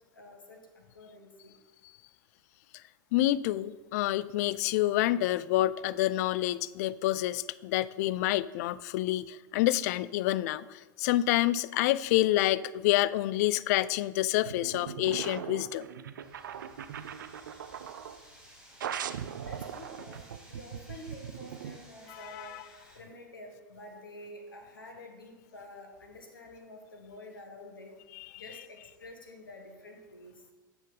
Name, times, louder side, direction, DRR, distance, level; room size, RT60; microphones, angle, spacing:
voice 1, 0.1-1.5 19.4-22.5 22.9-27.9 28.4-30.4, left 1 dB, 80° left, 3 dB, 1.7 m, -49 dB
voice 2, 3.1-15.9 22.1-22.6 28.2-28.3, left 15 dB, 50° left, 18 dB, 0.4 m, -28 dB
sound 1, 14.4-18.2 18.8-21.8, right 8 dB, 65° right, 0.5 m, -40 dB
sound 2, 16.2-23.0, equal, 10° right, 3.3 m, -56 dB
9.8 x 7.4 x 4.0 m, 1.2 s
figure-of-eight pair, 90°, 11 cm